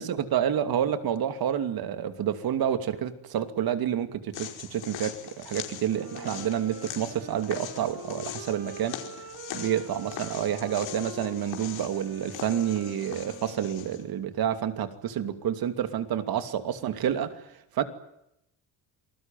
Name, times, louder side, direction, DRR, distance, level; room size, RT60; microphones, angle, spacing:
voice 1, 0.0-9.0 9.5-17.8, right 9 dB, 55° right, 9 dB, 2.8 m, -29 dB
walking in snowshoes, 4.3-14.0, left 11 dB, 80° left, 5.2 m, -41 dB
Wind instrument woodwind instrument, 5.8-14.2, right 2 dB, 40° right, 6.2 m, -45 dB
27.5 x 20.5 x 9.3 m, 0.83 s
cardioid pair, 115°, 43 cm